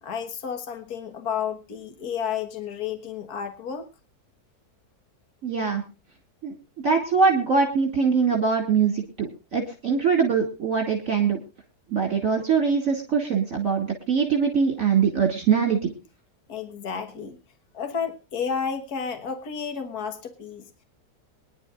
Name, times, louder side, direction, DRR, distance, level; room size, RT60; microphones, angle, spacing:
voice 1, 0.0-3.9 16.5-17.4 17.7-20.8, left 7 dB, 70° left, 7 dB, 2.0 m, -31 dB
voice 2, 5.4-5.8 6.4-6.5 6.8-11.4 11.9-15.9, right 6 dB, 55° right, 2 dB, 3.1 m, -22 dB
24.0 x 11.0 x 2.5 m, 0.29 s
omnidirectional pair, 1.7 m